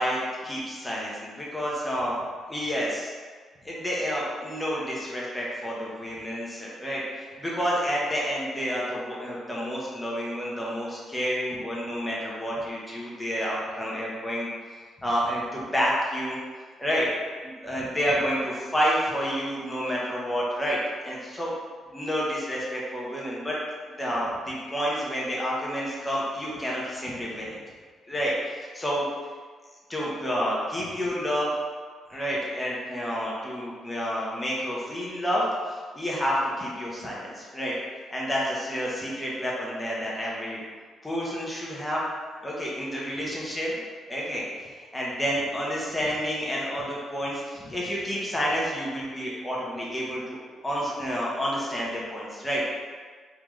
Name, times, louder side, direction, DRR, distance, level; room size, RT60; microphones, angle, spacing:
voice 1, 0.0-2.1 2.5-3.1 3.6-14.5 15.0-16.4 16.8-17.1 17.4-21.5 21.9-23.6 24.0-27.6 28.1-29.1 29.9-31.5 32.1-37.7 38.1-40.6 41.0-42.0 42.4-43.8 44.1-52.6, equal, 10° left, -5 dB, 1.0 m, -29 dB
3.7 x 2.8 x 3.2 m, 1.5 s
cardioid pair, 90°, 0 cm